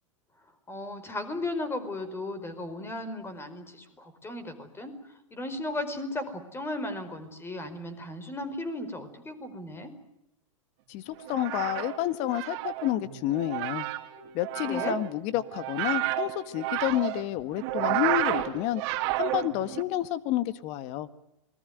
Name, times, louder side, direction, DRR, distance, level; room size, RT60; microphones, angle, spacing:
voice 1, 0.7-9.9 14.6-15.0, left 2 dB, 15° left, 12 dB, 4.7 m, -36 dB
voice 2, 10.9-13.9 14.3-18.8 19.2-21.1, left 13 dB, 45° left, 15 dB, 1.7 m, -29 dB
sound 1, 11.1-19.8, right 17 dB, 50° right, 2.8 m, -31 dB
28.0 x 20.5 x 9.4 m, 0.86 s
hypercardioid pair, 100°, 16 cm